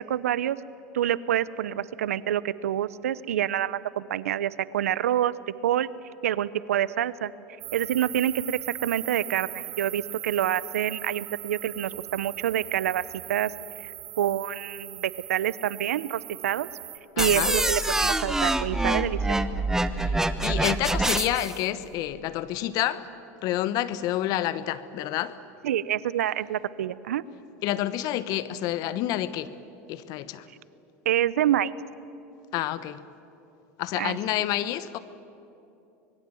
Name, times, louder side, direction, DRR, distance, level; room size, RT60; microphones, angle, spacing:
voice 1, 0.1-0.6 0.9-5.3 5.6-5.9 6.2-7.3 7.7-13.0 13.3-13.5 13.8-13.9 14.2-16.7 17.2-19.4 25.6-27.2 31.1-31.7 34.0-34.2, right 11 dB, 85° right, 0.7 m, -27 dB
sound 1, 7.6-17.0, right 15 dB, 60° right, 2.5 m, -40 dB
voice 2, 17.2-17.5 19.9-23.1 23.4-25.4 27.6-29.5 29.9-30.5 32.5-33.0 33.8-35.0, left 13 dB, 55° left, 1.1 m, -29 dB
sound 2, 17.2-21.6, right 2 dB, 5° right, 1.0 m, -25 dB
25.0 x 21.0 x 7.7 m
hypercardioid pair, 90°, 8 cm